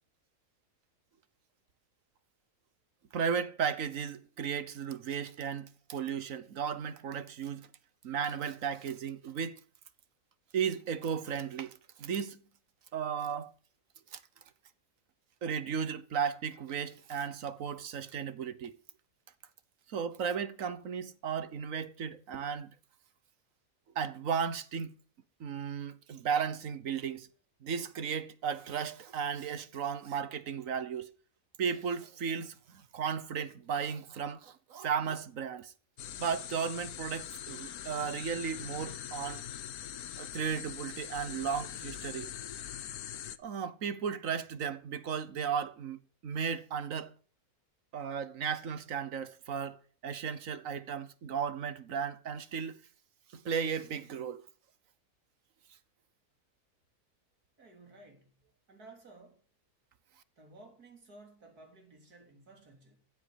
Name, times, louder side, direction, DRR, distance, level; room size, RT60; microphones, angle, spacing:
voice 1, 3.1-7.7 8.0-9.6 10.5-12.4 12.9-13.5 14.1-14.2 15.4-18.7 19.9-22.7 23.9-24.9 25.4-27.3 27.6-31.1 31.6-35.7 36.2-39.4 40.2-42.3 43.4-47.1 47.9-52.8 53.3-54.4, right 7 dB, 60° right, 1.4 m, -35 dB
sound 1, 36.0-43.4, left 10 dB, 75° left, 1.3 m, -42 dB
voice 2, 57.6-58.4 58.7-59.4 60.4-63.0, right 2 dB, 85° right, 3.8 m, -55 dB
15.5 x 8.1 x 7.6 m
omnidirectional pair, 1.6 m